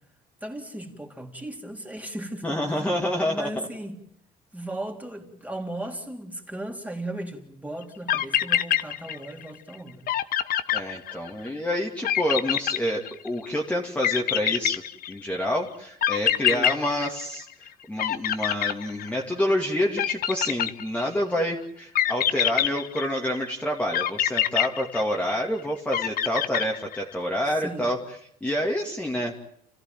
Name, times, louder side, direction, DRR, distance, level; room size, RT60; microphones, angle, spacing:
voice 1, 0.4-4.0 4.5-10.0 16.5-16.7 27.6-27.9, right 1 dB, 10° right, 3.6 m, -36 dB
voice 2, 2.4-3.7 10.7-14.8 15.1-28.0 28.4-29.4, equal, 10° left, 2.5 m, -28 dB
sound 1, 7.8-7.9 8.1-9.4 9.7-9.8 10.1-11.5 12.0-13.5 14.0-15.4 16.0-17.7 18.0-19.4 20.0-21.2 22.0-23.4 23.9-25.5 25.9-27.1, left 11 dB, 60° left, 1.1 m, -25 dB
30.0 x 15.0 x 9.2 m
cardioid pair, 110°, 17 cm